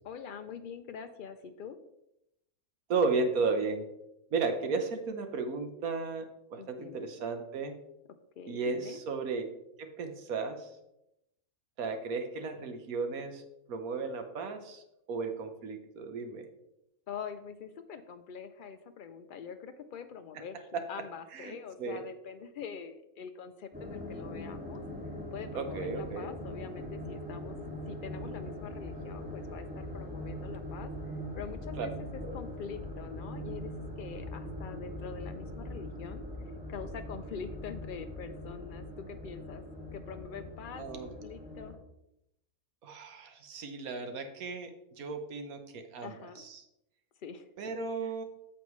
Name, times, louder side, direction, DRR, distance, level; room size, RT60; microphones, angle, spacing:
voice 1, 0.1-1.8 6.6-7.1 8.4-9.0 17.1-24.8 25.3-30.9 31.3-33.7 34.0-39.6 39.9-41.8 46.0-46.4 47.2-47.5 48.0-48.1, left 6 dB, 80° left, 9 dB, 0.4 m, -44 dB
voice 2, 2.9-3.9 4.3-7.8 8.5-9.5 9.8-10.7 11.8-13.4 13.7-16.5 20.7-20.8 21.3-22.0 25.5-26.3 31.8-31.9 32.2-32.3 40.8-41.1 42.8-46.6 47.6-48.2, right 4 dB, 85° right, 7 dB, 1.4 m, -34 dB
sound 1, 23.7-41.8, left 1 dB, 5° right, 1.8 m, -41 dB
8.5 x 6.9 x 3.1 m, 0.84 s
omnidirectional pair, 1.5 m